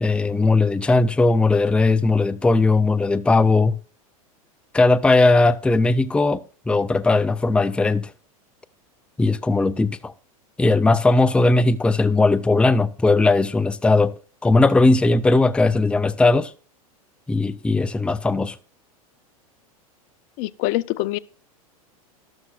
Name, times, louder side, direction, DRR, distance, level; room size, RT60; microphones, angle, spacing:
voice 1, 0.0-3.8 4.7-8.1 9.2-10.1 10.6-14.1 14.4-16.5 17.3-18.6, left 3 dB, 5° left, 0.5 m, -18 dB
voice 2, 20.4-21.2, left 17 dB, 50° left, 0.6 m, -24 dB
12.5 x 12.5 x 2.4 m
hypercardioid pair, 105°, 19 cm